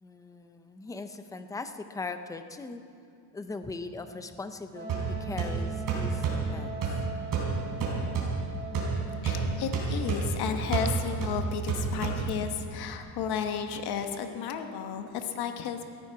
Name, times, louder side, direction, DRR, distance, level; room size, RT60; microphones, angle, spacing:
voice 1, 0.0-2.8 3.3-6.8, left 3 dB, 10° left, 9 dB, 0.4 m, -40 dB
Wind instrument woodwind instrument, 4.7-10.3, right 3 dB, 30° right, 2.7 m, -41 dB
sound 1, 4.9-12.6, right 4 dB, 50° right, 4.1 m, -31 dB
voice 2, 9.2-15.8, left 7 dB, 70° left, 6 dB, 1.2 m, -33 dB
18.5 x 14.5 x 4.6 m, 2.4 s
cardioid pair, 170°, 41 cm